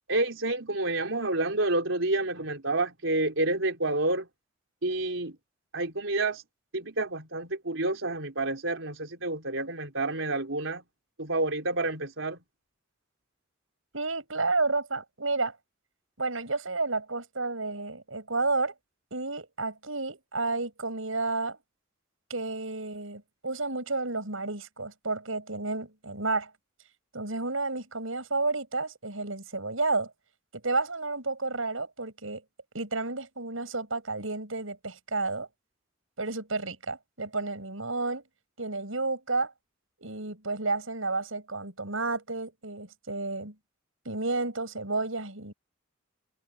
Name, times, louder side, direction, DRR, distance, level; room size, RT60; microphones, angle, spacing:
voice 1, 0.1-4.3 4.8-5.4 5.7-6.4 6.7-10.8 11.2-12.4, right 2 dB, 70° right, 4.6 m, -29 dB
voice 2, 13.9-15.6 16.2-18.7 19.1-21.6 22.3-26.5 27.1-30.1 30.5-32.4 32.7-35.5 36.2-38.2 38.6-39.5 40.0-43.5 44.0-45.5, right 3 dB, 90° right, 6.5 m, -31 dB
head